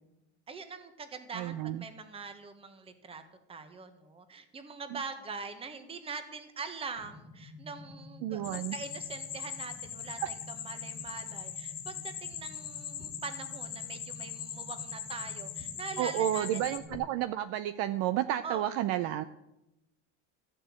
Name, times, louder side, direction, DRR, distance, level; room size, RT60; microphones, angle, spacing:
voice 1, 0.5-3.2 3.5-16.6 18.4-18.6, right 5 dB, 15° right, 9 dB, 1.2 m, -43 dB
voice 2, 1.3-1.8 4.9-5.0 8.2-8.8 10.2-10.3 16.0-19.2, right 12 dB, 50° right, 12 dB, 0.6 m, -31 dB
sound 1, 7.0-17.0, left 3 dB, 55° left, 1.9 m, -50 dB
sound 2, 8.4-16.8, left 9 dB, 35° left, 1.6 m, -41 dB
14.0 x 6.7 x 8.7 m, 0.91 s
cardioid pair, 160°, 33 cm